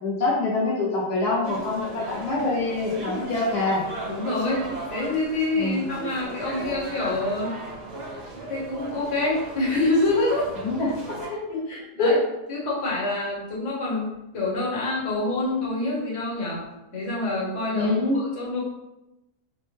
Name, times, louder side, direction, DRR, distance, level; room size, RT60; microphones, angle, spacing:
voice 1, 0.0-3.8 5.6-5.8 10.6-11.4 12.0-12.2 17.7-18.2, left 2 dB, 80° left, -4 dB, 1.2 m, -25 dB
sound 1, 1.4-11.3, right 2 dB, 90° right, 1.4 m, -36 dB
voice 2, 4.0-7.6 8.5-10.5 11.5-12.2 12.5-16.6 16.9-18.6, left 2 dB, 55° left, -5 dB, 1.3 m, -26 dB
4.1 x 2.1 x 3.1 m, 0.94 s
omnidirectional pair, 1.7 m